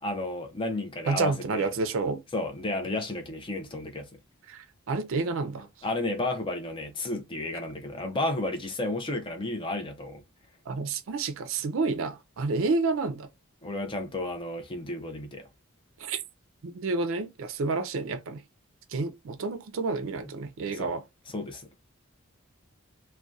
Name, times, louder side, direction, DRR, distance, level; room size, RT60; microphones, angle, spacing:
voice 1, 0.0-1.7 2.3-4.1 5.8-10.2 13.6-15.5 20.7-20.9 21.3-21.7, left 2 dB, 25° left, 0.4 m, -32 dB
voice 2, 1.1-2.2 4.5-5.7 10.7-13.3 16.0-16.2 16.6-18.4 18.9-21.0, right 3 dB, 65° right, 0.4 m, -29 dB
2.6 x 2.1 x 2.3 m
head